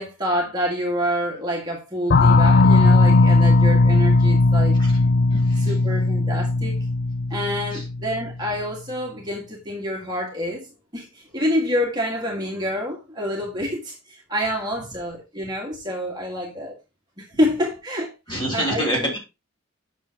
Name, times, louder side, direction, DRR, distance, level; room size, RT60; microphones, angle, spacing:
voice 1, 0.0-4.9 5.6-6.8 7.3-10.7 10.9-16.8 17.2-19.1, equal, 20° right, 1.8 m, -27 dB
sound 1, 2.1-8.4, left 3 dB, 50° left, 0.4 m, -17 dB
voice 2, 5.3-5.8 7.7-7.8 18.3-19.2, equal, 20° left, 3.0 m, -27 dB
8.6 x 6.4 x 2.9 m
head